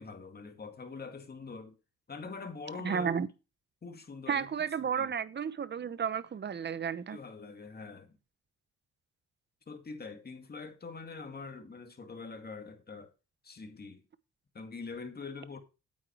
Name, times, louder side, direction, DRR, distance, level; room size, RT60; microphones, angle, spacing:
voice 1, 0.0-1.8 2.1-3.1 3.8-5.1 7.1-8.2 9.7-13.1 13.4-14.0 14.5-15.6, left 4 dB, 30° left, 2.2 m, -44 dB
voice 2, 2.8-3.3 4.3-7.2, right 7 dB, 35° right, 0.9 m, -32 dB
8.7 x 8.5 x 4.4 m
cardioid pair, 90°, 30 cm